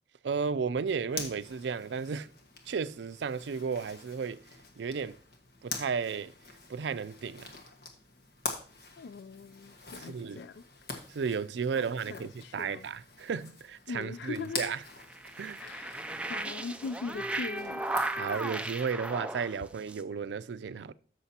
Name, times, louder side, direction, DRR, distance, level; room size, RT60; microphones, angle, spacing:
voice 1, 0.2-2.3 2.7-4.4 4.8-5.2 5.6-6.3 6.7-7.5 10.0-10.4 11.1-14.8 15.4-15.6 18.2-20.9, right 5 dB, 85° right, 0.4 m, -33 dB
Zipper (clothing), 1.1-18.4, left 4 dB, 60° left, 1.5 m, -45 dB
voice 2, 9.0-10.6 11.7-12.9 13.9-14.8 15.6-17.8, left 4 dB, 80° left, 0.3 m, -41 dB
sound 1, 14.3-20.0, right 2 dB, 5° right, 0.3 m, -36 dB
13.5 x 6.2 x 2.8 m
head